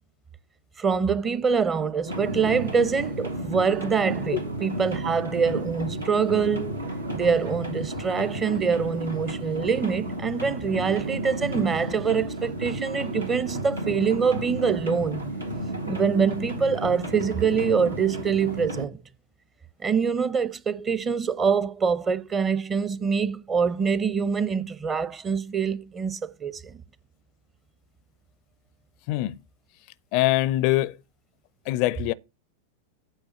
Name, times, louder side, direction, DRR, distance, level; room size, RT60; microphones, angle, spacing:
voice 1, 0.8-6.8 7.1-15.3 15.8-19.0 19.8-26.7, right 6 dB, 20° right, 0.7 m, -25 dB
sound 1, 2.1-18.8, right 1 dB, 85° right, 1.9 m, -32 dB
voice 2, 30.1-30.9 31.7-32.1, left 16 dB, 45° left, 0.4 m, -23 dB
8.9 x 4.8 x 7.5 m
figure-of-eight pair, 90°, 0 cm